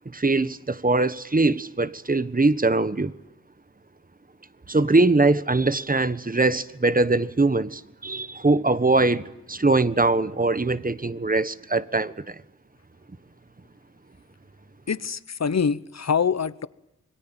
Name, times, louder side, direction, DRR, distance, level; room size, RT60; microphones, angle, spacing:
voice 1, 0.0-3.1 4.7-12.4, right 3 dB, 30° right, 1.3 m, -22 dB
voice 2, 14.9-16.7, left 6 dB, 60° left, 1.1 m, -25 dB
27.0 x 23.5 x 8.9 m
wide cardioid pair, 70°, 30 cm